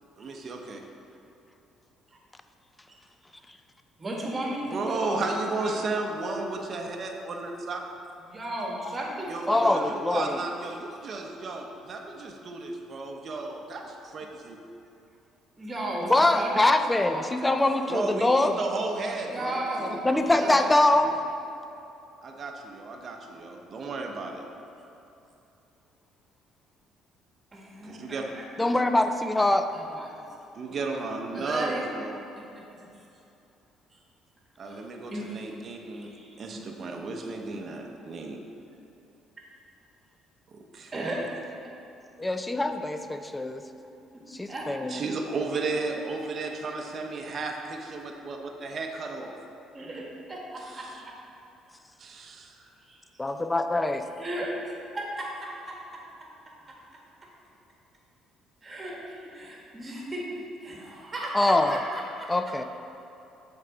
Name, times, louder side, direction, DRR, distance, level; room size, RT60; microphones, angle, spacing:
voice 1, 0.2-0.8 4.7-7.9 9.3-14.6 17.9-20.7 22.2-24.5 27.8-28.2 28.6-28.7 30.5-32.2 34.6-36.1 36.4-38.4 40.5-41.3 44.9-49.3 50.6-51.0 52.0-52.6, right 3 dB, 45° right, 2 dB, 0.7 m, -34 dB
voice 2, 4.0-5.9 8.2-10.4 15.6-16.8 17.1-17.8 19.3-20.1 20.4-20.6 27.5-28.4 29.7-30.2 31.3-31.9 32.5-32.9 33.9-34.0 34.6-34.8 35.1-35.5 35.8-36.6 40.9-41.3 42.6-42.7 44.1-44.2 44.5-44.7 49.7-51.1 52.5-53.0 54.2-55.7 57.2-57.3 58.6-60.2 60.6-62.3, right 1 dB, 25° right, -2 dB, 1.5 m, -35 dB
voice 3, 9.5-10.4 16.1-18.6 20.0-21.1 28.6-29.7 42.2-43.6 44.4-45.0 53.2-54.0 61.3-61.8 62.3-62.6, left 2 dB, 15° left, 8 dB, 0.4 m, -23 dB
6.5 x 4.5 x 3.9 m, 2.8 s
cardioid pair, 90°, 0 cm